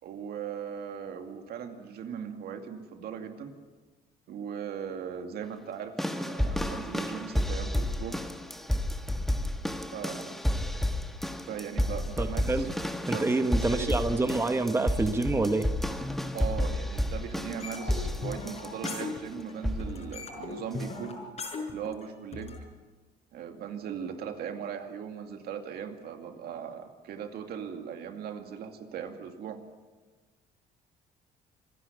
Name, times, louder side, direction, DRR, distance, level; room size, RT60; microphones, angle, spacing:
voice 1, 0.0-3.5 4.3-8.2 9.9-10.4 11.5-12.6 13.1-14.0 16.3-21.2 21.7-22.5 23.3-29.6, right 7 dB, 70° right, 5 dB, 2.4 m, -39 dB
sound 1, 6.0-19.2 19.6-20.0 20.8-20.9, left 1 dB, ahead, 1.4 m, -31 dB
voice 2, 12.2-12.7 13.0-15.7, right 2 dB, 15° right, 8 dB, 1.1 m, -27 dB
sound 2, 17.6-19.5 19.8-22.6, left 3 dB, 40° left, 5.5 m, -38 dB
26.5 x 10.5 x 9.4 m, 1.3 s
cardioid pair, 110°, 17 cm